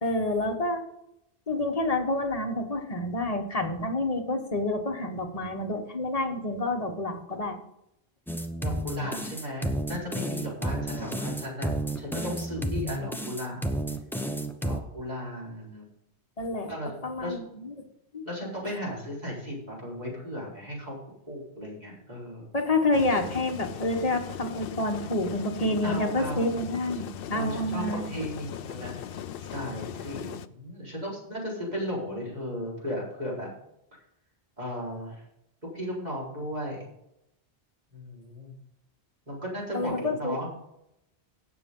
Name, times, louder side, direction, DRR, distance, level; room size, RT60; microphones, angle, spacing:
voice 1, 0.0-0.8 1.5-7.6 10.9-11.1 16.4-16.7 17.0-17.9 18.1-18.2 22.5-28.0 39.7-40.4, left 2 dB, 35° left, 4 dB, 1.4 m, -28 dB
sound 1, 8.3-14.8, right 1 dB, ahead, 0.8 m, -31 dB
voice 2, 8.6-11.7 12.0-13.7 14.6-15.8 16.6-17.4 18.2-21.0 21.3-22.5 25.6-26.5 27.3-33.5 34.6-35.2 35.7-36.9 37.9-38.6 39.3-40.5, equal, 40° right, -5 dB, 4.6 m, -36 dB
sound 2, 22.9-30.5, left 9 dB, 65° left, 0.7 m, -39 dB
17.0 x 7.0 x 3.8 m, 0.82 s
omnidirectional pair, 1.1 m